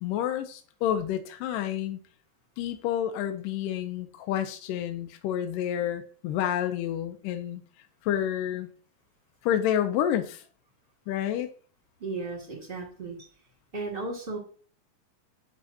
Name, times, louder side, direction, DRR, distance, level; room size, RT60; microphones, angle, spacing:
voice 1, 0.0-2.0 2.6-7.6 8.0-8.7 9.4-10.4 11.1-11.5, left 10 dB, 80° left, 7 dB, 2.2 m, -29 dB
voice 2, 12.0-13.2 13.7-14.4, right 3 dB, 25° right, -1 dB, 1.4 m, -35 dB
10.5 x 3.6 x 2.7 m, 0.42 s
omnidirectional pair, 4.0 m